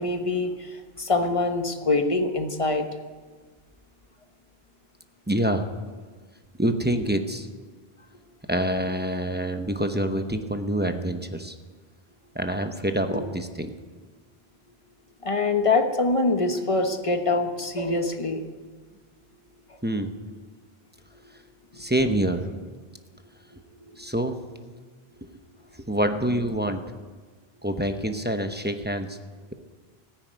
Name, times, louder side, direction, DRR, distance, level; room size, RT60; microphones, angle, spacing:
voice 1, 0.0-2.8 15.2-18.4 21.7-21.8 23.9-24.0, left 3 dB, 30° left, 6 dB, 1.2 m, -24 dB
voice 2, 5.3-5.7 6.6-7.5 8.5-11.6 12.3-13.7 19.8-20.2 21.8-22.5 24.0-24.4 25.9-26.8 27.6-29.2, right 1 dB, 10° right, 6 dB, 0.8 m, -26 dB
14.5 x 9.8 x 9.1 m, 1.4 s
omnidirectional pair, 1.1 m